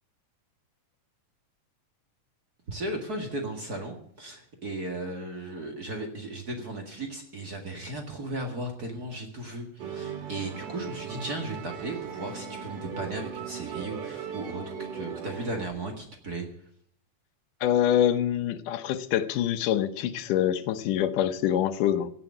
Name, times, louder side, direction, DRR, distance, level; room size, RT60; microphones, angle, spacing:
voice 1, 2.7-16.4, right 2 dB, 35° right, 3 dB, 1.9 m, -36 dB
Musical instrument, 9.8-15.7, right 7 dB, 85° right, 3.5 m, -38 dB
voice 2, 17.6-22.1, left 11 dB, 85° left, 11 dB, 2.5 m, -25 dB
16.5 x 7.0 x 9.8 m, 0.64 s
omnidirectional pair, 3.6 m